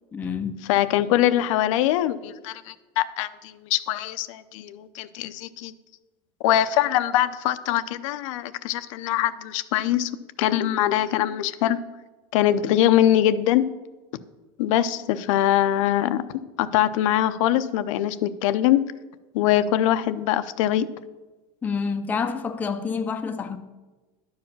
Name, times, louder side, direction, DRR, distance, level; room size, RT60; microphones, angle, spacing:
voice 1, 0.1-0.6 21.6-23.6, left 5 dB, 10° left, 0.4 m, -28 dB
voice 2, 0.7-5.7 6.4-10.1 10.4-11.8 12.3-13.6 14.6-16.2 16.6-18.8 19.3-20.9, left 12 dB, 90° left, 0.6 m, -22 dB
11.0 x 4.8 x 7.2 m
cardioid pair, 170°, 16 cm